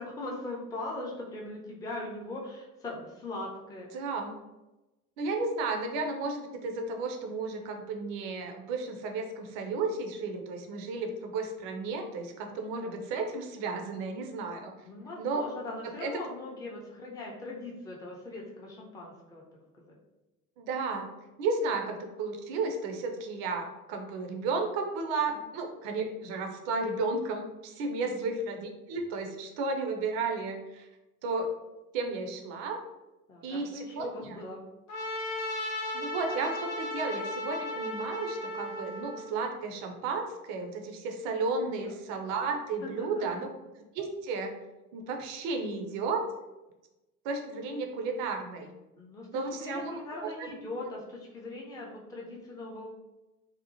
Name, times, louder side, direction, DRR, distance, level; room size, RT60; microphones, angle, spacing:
voice 1, 0.0-3.9 12.5-13.0 14.8-19.4 28.0-28.3 33.3-34.6 41.8-41.9 42.8-43.5 49.0-52.9, left 2 dB, 10° left, -2 dB, 0.5 m, -40 dB
voice 2, 3.9-4.3 5.2-14.7 15.2-15.5 15.8-16.2 20.6-21.1 21.4-30.9 31.2-31.5 31.9-32.8 33.4-34.4 35.9-43.5 43.9-44.6 44.9-46.2 47.2-48.7 49.3-50.5, right 3 dB, 50° right, 4 dB, 0.5 m, -33 dB
Trumpet, 34.9-39.3, left 1 dB, 75° left, 0.7 m, -35 dB
2.8 x 2.0 x 2.7 m, 1.0 s
figure-of-eight pair, 60°, 44 cm